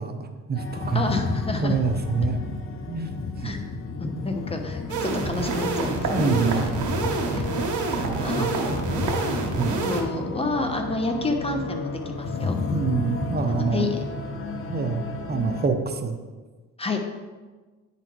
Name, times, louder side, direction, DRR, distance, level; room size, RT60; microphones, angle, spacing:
voice 1, 0.0-2.4 2.9-3.1 3.4-3.6 6.1-6.7 8.0-8.5 9.6-9.9 12.7-13.9 14.7-16.2, right 5 dB, 30° right, 6 dB, 0.9 m, -27 dB
sound 1, 0.5-15.7, left 3 dB, 45° left, 0.8 m, -32 dB
voice 2, 0.9-1.7 3.4-3.6 4.0-6.4 7.3-7.5 8.2-8.5 9.8-12.6 13.5-14.0 16.8-17.0, left 3 dB, 20° left, 4 dB, 1.1 m, -29 dB
sound 2, 4.9-10.0, right 4 dB, 75° right, 1.3 m, -27 dB
9.7 x 4.1 x 4.6 m, 1.3 s
cardioid pair, 90°, 30 cm